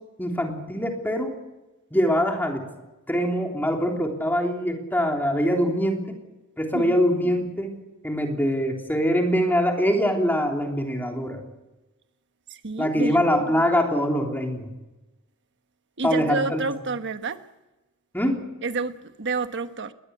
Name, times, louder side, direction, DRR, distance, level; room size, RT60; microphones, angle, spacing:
voice 1, 0.2-1.3 1.9-2.7 3.1-6.0 6.6-7.7 8.0-11.4 12.8-14.7 16.0-16.6 18.1-18.4, equal, 10° left, 3.5 m, -23 dB
voice 2, 12.5-13.2 16.0-17.4 18.6-19.9, right 3 dB, 55° right, 1.2 m, -29 dB
21.0 x 19.5 x 8.3 m
head